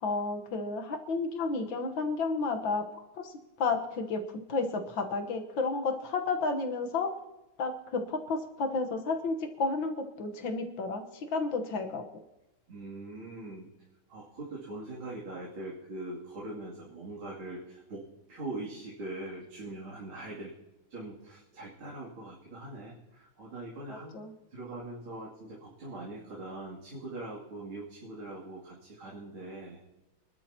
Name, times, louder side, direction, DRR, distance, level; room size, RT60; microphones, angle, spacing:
voice 1, 0.0-7.1 7.6-12.0 23.9-24.3, left 3 dB, 65° left, 5 dB, 1.9 m, -32 dB
voice 2, 12.7-13.7 14.1-20.5 20.9-24.1 24.5-29.8, right 2 dB, 75° right, -6 dB, 3.7 m, -42 dB
25.5 x 12.0 x 2.9 m, 0.98 s
omnidirectional pair, 2.3 m